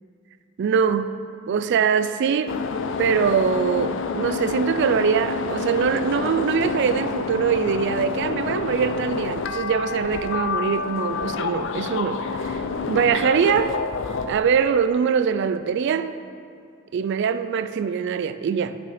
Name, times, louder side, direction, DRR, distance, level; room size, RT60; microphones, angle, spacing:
voice 1, 0.6-1.1 1.5-2.6 3.0-13.7 14.3-16.1 16.9-18.8, right 6 dB, 55° right, 0.3 m, -23 dB
sound 1, 2.5-14.4, left 5 dB, 65° left, 0.4 m, -28 dB
8.6 x 6.0 x 4.9 m
head